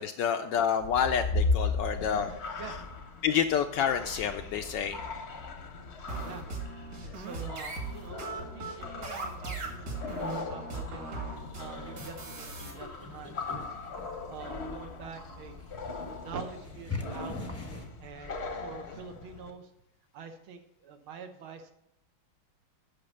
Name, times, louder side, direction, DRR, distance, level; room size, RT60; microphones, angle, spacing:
voice 1, 0.0-2.8 3.2-5.2, left 8 dB, 75° left, 7 dB, 1.1 m, -29 dB
sound 1, 0.8-19.5, left 3 dB, 45° left, 0.9 m, -38 dB
sound 2, 6.1-12.7, right 3 dB, 50° right, 2.4 m, -39 dB
voice 2, 7.0-11.0 11.5-13.7 14.3-15.6 16.2-17.6 18.0-19.7 20.1-21.7, right 5 dB, 80° right, 6 dB, 1.9 m, -45 dB
sound 3, 11.4-17.9, left 3 dB, 20° left, 0.4 m, -44 dB
8.7 x 5.9 x 6.4 m, 0.80 s
omnidirectional pair, 2.3 m